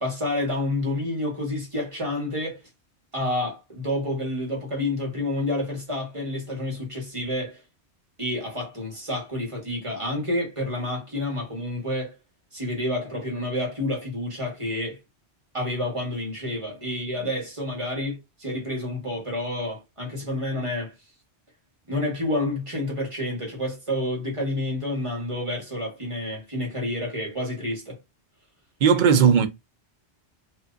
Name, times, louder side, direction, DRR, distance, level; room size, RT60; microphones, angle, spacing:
voice 1, 0.0-2.6 3.1-7.6 8.2-12.2 12.5-15.0 15.5-20.9 21.9-28.0, left 1 dB, 30° right, 1.2 m, -29 dB
voice 2, 28.8-29.5, right 7 dB, 50° right, 0.7 m, -17 dB
3.5 x 2.6 x 2.5 m
omnidirectional pair, 1.2 m